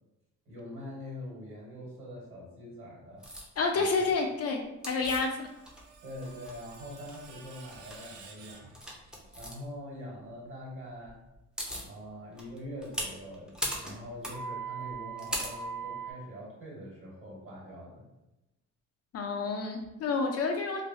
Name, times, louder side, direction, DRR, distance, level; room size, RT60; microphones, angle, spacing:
voice 1, 0.4-3.3 3.7-4.1 6.0-8.7 9.3-11.2 11.8-13.5 13.8-18.0, equal, 45° right, -3 dB, 1.4 m, -44 dB
sound 1, 3.2-3.5 4.8-5.9 6.2-7.2 7.7-8.0 8.7-9.5 11.1-11.2 11.3-11.9 12.4-16.1, right 1 dB, 5° right, 0.6 m, -37 dB
voice 2, 3.6-5.5 19.1-20.8, left 4 dB, 55° left, 2 dB, 0.5 m, -29 dB
Screech, 5.1-9.4, right 4 dB, 85° right, 0.5 m, -53 dB
3.2 x 2.2 x 2.6 m, 0.97 s
cardioid pair, 90°, 30 cm